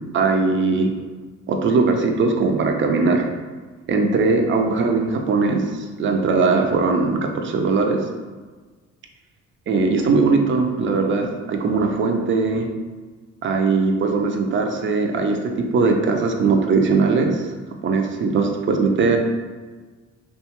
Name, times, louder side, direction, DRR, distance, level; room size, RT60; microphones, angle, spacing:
voice 1, 0.1-0.9 1.5-3.3 3.9-5.6 6.0-8.1 9.7-12.7 13.4-17.4 17.8-19.2, right 4 dB, 40° right, 3 dB, 0.4 m, -20 dB
2.8 x 2.3 x 2.9 m, 1.4 s
cardioid pair, 90°, 30 cm